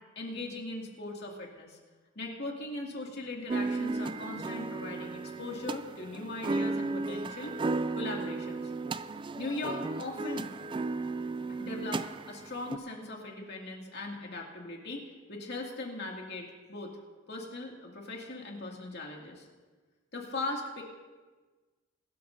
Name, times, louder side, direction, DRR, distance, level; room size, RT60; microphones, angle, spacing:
voice 1, 0.2-1.8 2.2-7.6 7.9-8.7 9.4-10.5 11.6-16.9 17.3-19.5 20.1-20.8, left 2 dB, 55° left, -1 dB, 2.5 m, -39 dB
sound 1, 3.5-12.8, right 3 dB, 25° right, 0.3 m, -34 dB
22.5 x 13.0 x 2.7 m, 1.3 s
head